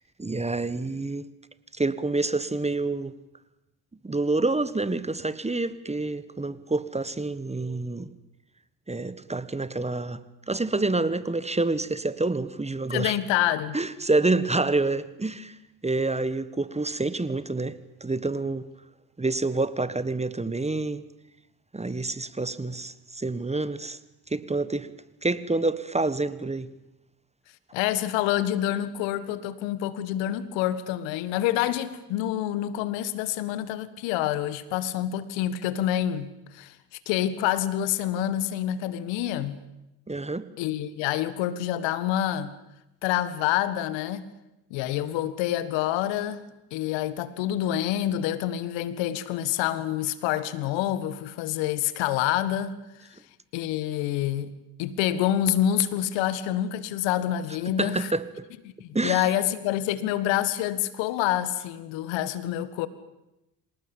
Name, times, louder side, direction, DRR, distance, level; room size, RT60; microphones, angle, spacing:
voice 1, 0.2-1.3 1.7-3.1 4.0-8.1 8.9-10.2 10.5-13.1 13.7-15.5 15.8-18.7 19.2-21.0 21.7-24.0 24.3-24.9 25.2-26.7 40.1-40.5 57.8-58.2 58.9-59.3, right 3 dB, 15° right, 1.5 m, -27 dB
voice 2, 12.9-13.8 27.7-36.8 37.1-39.6 40.6-42.5 43.0-44.3 44.7-46.4 46.7-52.8 53.0-53.2 53.5-54.5 54.8-58.1 58.8-62.9, left 12 dB, 75° left, 1.7 m, -27 dB
26.0 x 19.0 x 9.0 m
hypercardioid pair, 60°, 45 cm